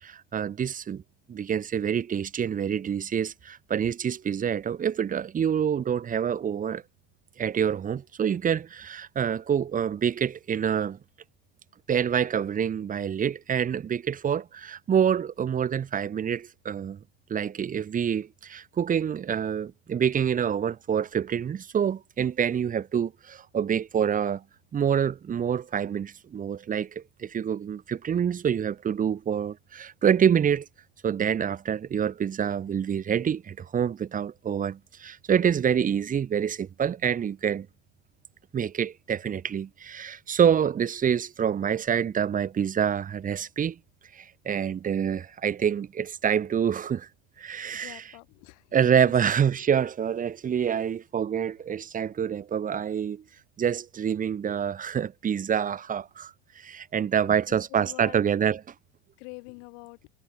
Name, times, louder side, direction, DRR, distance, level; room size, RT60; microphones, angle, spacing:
voice 1, 0.0-1.0 1.3-6.8 7.4-11.0 11.9-17.0 17.3-24.4 24.7-30.7 31.0-37.7 38.5-43.8 44.1-47.1 47.4-48.1 48.7-53.2 53.6-58.7, right 8 dB, 20° right, 1.1 m, -27 dB
voice 2, 47.7-49.0 57.2-58.3 59.2-60.1, left 40 dB or more, 65° left, 6.4 m, -46 dB
supercardioid pair, 140°, 41 cm